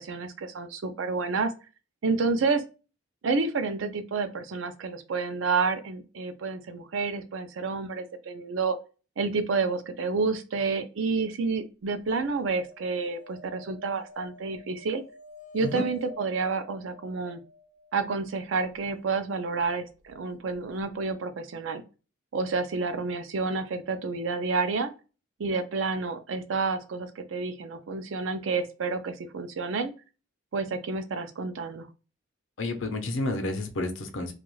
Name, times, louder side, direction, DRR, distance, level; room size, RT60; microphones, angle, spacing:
voice 1, 0.0-1.5 2.0-2.6 3.2-8.8 9.2-15.0 15.5-17.4 17.9-21.8 22.3-24.9 25.4-29.9 30.5-31.9, right 4 dB, 75° right, 9 dB, 0.5 m, -29 dB
sound 1, 12.1-18.2 20.5-20.6 20.8-20.9, left 2 dB, 40° left, 0.4 m, -50 dB
voice 2, 32.6-34.3, left 2 dB, 75° left, 5 dB, 0.6 m, -30 dB
2.4 x 2.3 x 3.0 m, 0.33 s
head